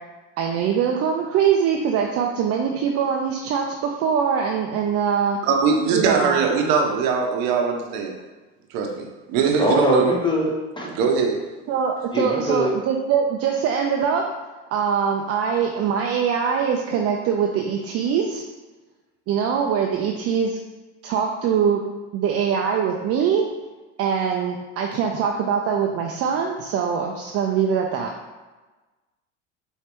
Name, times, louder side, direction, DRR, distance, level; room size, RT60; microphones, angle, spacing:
voice 1, 0.4-5.4 5.9-6.4 11.7-14.2 14.7-18.4 19.3-20.6 21.0-21.8 22.1-23.5 24.0-28.1, right 7 dB, 40° right, 1 dB, 0.5 m, -23 dB
voice 2, 5.4-8.1 8.7-10.1 10.8-11.4, right 5 dB, 60° right, 3 dB, 0.8 m, -21 dB
voice 3, 9.6-10.9 12.1-12.7, equal, 10° left, -2 dB, 1.0 m, -22 dB
4.5 x 3.2 x 3.0 m, 1.2 s
hypercardioid pair, 80°, 38 cm